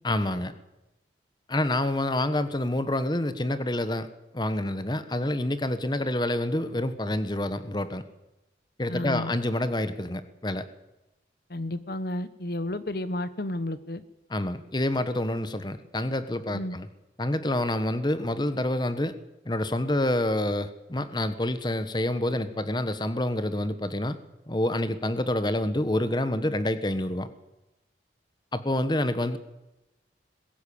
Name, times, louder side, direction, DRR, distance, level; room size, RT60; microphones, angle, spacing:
voice 1, 0.0-0.5 1.5-4.1 4.3-8.0 8.8-10.7 14.3-16.9 17.2-19.1 19.4-24.2 24.5-27.3 28.5-29.4, left 1 dB, 25° left, 12 dB, 1.2 m, -27 dB
voice 2, 8.9-9.3 11.5-14.0 16.5-16.8, left 1 dB, 55° left, 14 dB, 1.0 m, -32 dB
21.5 x 16.0 x 8.6 m, 0.96 s
head